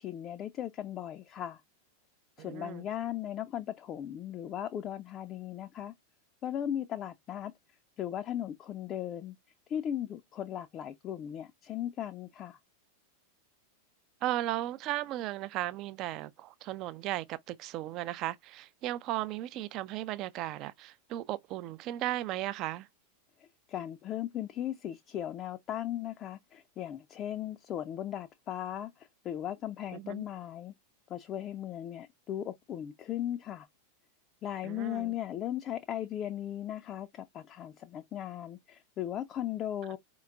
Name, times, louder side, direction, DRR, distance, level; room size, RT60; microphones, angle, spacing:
voice 1, 0.0-1.6 2.4-5.9 6.4-7.5 8.0-9.4 9.7-12.6 23.4-30.7 31.1-33.7 34.4-40.0, left 11 dB, 30° left, 0.4 m, -37 dB
voice 2, 2.4-2.8 14.2-22.9 29.9-30.3 34.6-35.1, right 15 dB, 40° right, 0.4 m, -36 dB
4.8 x 3.0 x 2.4 m
figure-of-eight pair, 90°, 0 cm